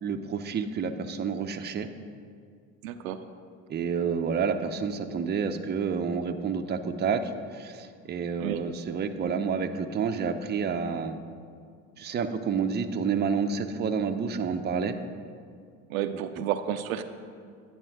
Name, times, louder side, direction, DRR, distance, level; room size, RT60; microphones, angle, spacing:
voice 1, 0.0-1.9 3.7-11.2 12.0-15.0 16.3-16.4, right 6 dB, 25° right, 8 dB, 0.5 m, -29 dB
voice 2, 2.8-3.2 8.4-8.7 15.9-17.0, right 10 dB, 80° right, 9 dB, 0.5 m, -31 dB
9.1 x 5.4 x 4.7 m, 2.2 s
hypercardioid pair, 65°, 40 cm